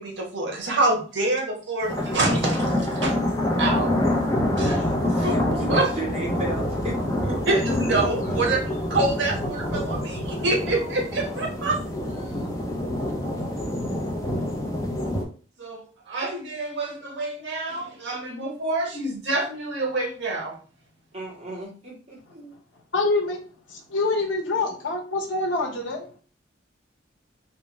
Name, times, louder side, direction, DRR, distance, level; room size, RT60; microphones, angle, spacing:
voice 1, 0.0-3.2 3.6-4.0 4.5-5.9 7.5-8.6 8.9-11.8 15.6-20.5, right 2 dB, 70° right, 0 dB, 1.1 m, -26 dB
sound 1, 1.8-15.2, left 1 dB, 15° left, 0.7 m, -26 dB
voice 2, 5.0-7.0 7.2-8.0 8.2-8.4 10.6-11.7 12.0-12.5 21.1-22.6, right 1 dB, 35° right, -5 dB, 1.6 m, -35 dB
voice 3, 22.9-23.4 23.7-26.1, left 3 dB, 90° left, 1 dB, 1.0 m, -25 dB
3.3 x 2.2 x 4.1 m, 0.40 s
head